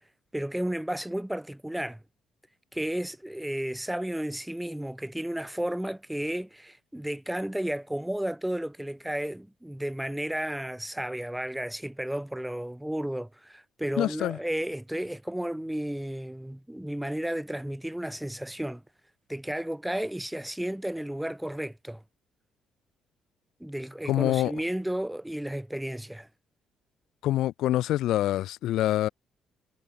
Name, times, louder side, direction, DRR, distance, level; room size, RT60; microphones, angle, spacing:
voice 1, 0.3-2.0 2.7-18.8 19.3-22.0 23.6-26.3, right 1 dB, 5° right, 3.5 m, -33 dB
voice 2, 14.0-14.4 24.1-24.5 27.2-29.1, left 14 dB, 80° left, 1.3 m, -25 dB
cardioid pair, 110°, 0 cm